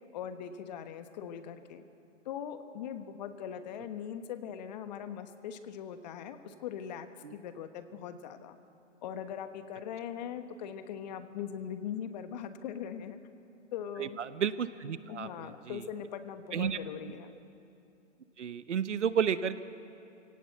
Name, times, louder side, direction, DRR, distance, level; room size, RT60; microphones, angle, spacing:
voice 1, 0.1-1.8 2.2-8.6 9.0-13.2 13.7-14.2 15.1-17.4, left 8 dB, 35° left, 10 dB, 1.3 m, -41 dB
voice 2, 14.0-15.8 16.5-16.8 18.4-19.6, right 8 dB, 75° right, 14 dB, 1.1 m, -32 dB
27.0 x 17.5 x 8.2 m, 2.7 s
hypercardioid pair, 140°, 37 cm